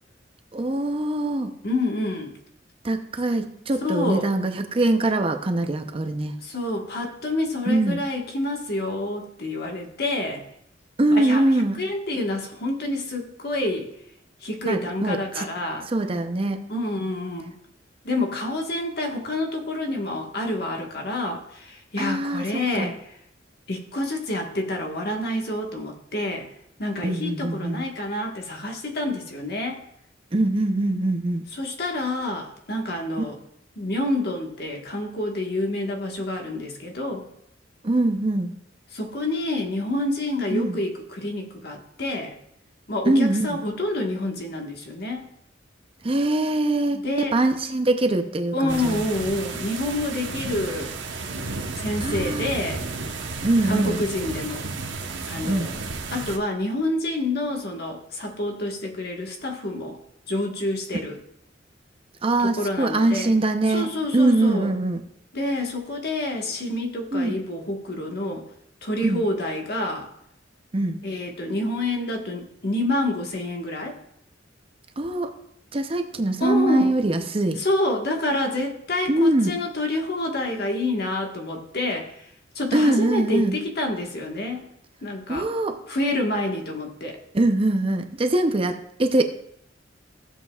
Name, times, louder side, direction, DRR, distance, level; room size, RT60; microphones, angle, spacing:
voice 1, 0.5-1.5 2.8-6.3 7.7-8.0 11.0-11.8 14.7-15.4 15.9-16.6 22.0-22.9 27.0-27.8 30.3-31.5 37.8-38.5 40.5-40.8 43.1-43.6 46.0-49.0 52.0-52.5 53.4-54.0 55.4-55.7 62.2-65.0 67.1-67.4 69.0-69.2 70.7-71.0 75.0-75.3 75.7-77.6 79.1-79.6 82.7-83.6 85.3-85.8 87.3-89.3, right 2 dB, 30° right, 6 dB, 0.6 m, -23 dB
voice 2, 1.6-2.3 3.8-4.3 6.4-10.5 11.1-11.4 11.8-13.9 14.4-15.9 16.7-17.6 18.0-23.0 23.7-26.5 26.8-29.8 31.5-33.4 33.8-37.3 38.9-42.4 42.9-45.2 46.9-47.3 48.5-50.9 51.8-52.8 53.6-54.6 55.3-55.8 56.1-60.0 60.3-61.2 62.4-63.3 63.7-64.7 65.3-68.5 68.8-70.1 71.0-74.0 76.4-76.9 77.6-82.1 82.5-84.6 85.0-85.5 85.9-87.2, left 1 dB, 60° left, 2 dB, 1.4 m, -28 dB
sound 1, 48.7-56.4, right 3 dB, 75° right, 1.0 m, -32 dB
15.0 x 7.5 x 2.4 m, 0.75 s
head